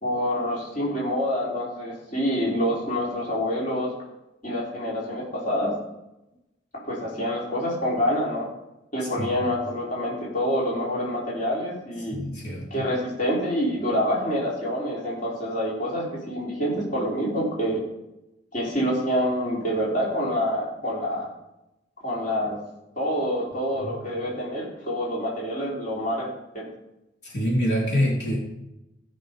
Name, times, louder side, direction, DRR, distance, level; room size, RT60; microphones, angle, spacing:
voice 1, 0.0-3.9 4.4-5.7 6.7-8.5 8.9-12.2 12.7-17.8 18.5-21.3 22.0-22.6 23.0-26.3 26.5-26.7, equal, 45° left, -5 dB, 3.4 m, -27 dB
voice 2, 12.1-12.6 23.8-23.9 27.2-28.4, equal, 65° left, -4 dB, 3.4 m, -25 dB
16.5 x 6.2 x 5.2 m, 0.93 s
head